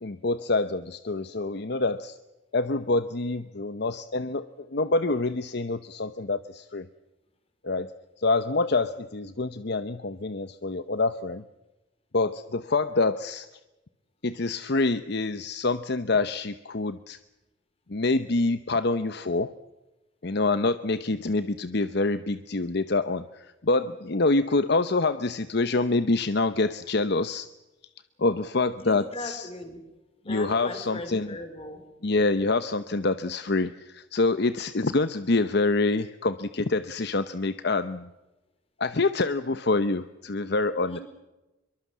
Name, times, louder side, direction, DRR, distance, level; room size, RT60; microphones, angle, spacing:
voice 1, 0.0-2.2 2.5-6.9 7.6-11.4 12.1-13.5 14.2-17.2 17.9-19.5 20.2-27.5 28.2-29.5 30.3-31.4 32.0-38.1 38.8-41.0, left 3 dB, 55° left, 12 dB, 0.8 m, -26 dB
voice 2, 28.8-29.8 30.3-31.8 40.9-41.0, left 1 dB, 30° left, 7 dB, 4.7 m, -38 dB
24.5 x 23.5 x 7.4 m, 1.0 s
head